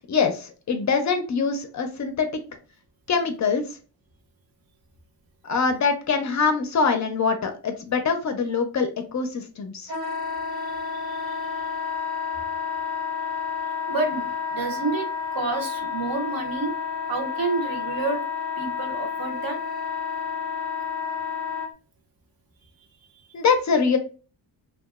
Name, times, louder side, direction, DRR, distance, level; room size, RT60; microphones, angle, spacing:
voice 1, 0.1-2.3 3.1-3.6 5.4-9.9 23.3-24.0, left 5 dB, 45° left, 6 dB, 0.4 m, -24 dB
Wind instrument woodwind instrument, 9.9-21.7, left 6 dB, 85° right, 1.0 m, -30 dB
voice 2, 10.9-11.4 13.9-16.7 17.1-18.2 18.6-19.6, right 3 dB, 55° right, 5 dB, 0.7 m, -29 dB
2.8 x 2.3 x 2.2 m, 0.35 s
wide cardioid pair, 145°, 42 cm